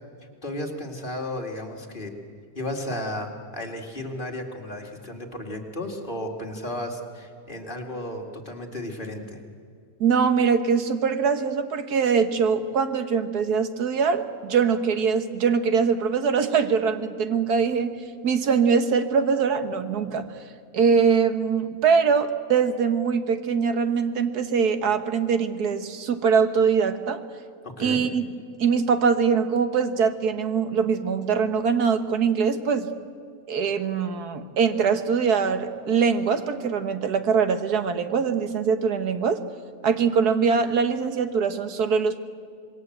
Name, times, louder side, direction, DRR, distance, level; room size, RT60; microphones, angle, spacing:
voice 1, 0.4-2.1 2.5-9.4 27.6-28.0, left 1 dB, 35° left, 2 dB, 2.5 m, -34 dB
voice 2, 10.0-17.9 18.2-20.3 20.7-27.2 27.8-28.3 28.6-32.9 33.5-39.4 39.8-42.2, right 6 dB, 85° right, 9 dB, 1.8 m, -22 dB
26.5 x 21.0 x 8.0 m, 2.3 s
omnidirectional pair, 1.6 m